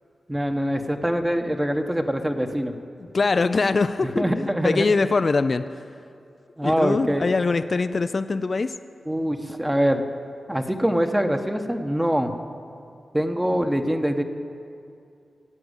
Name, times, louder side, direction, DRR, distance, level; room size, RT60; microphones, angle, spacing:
voice 1, 0.3-2.7 4.0-4.9 6.6-7.3 9.1-10.1 10.5-12.3 13.1-14.2, equal, 10° right, 5 dB, 1.2 m, -24 dB
voice 2, 3.0-5.8 6.6-8.7, left 4 dB, 50° left, 11 dB, 0.5 m, -23 dB
15.5 x 8.7 x 8.2 m, 2.5 s
cardioid pair, 60°, 0 cm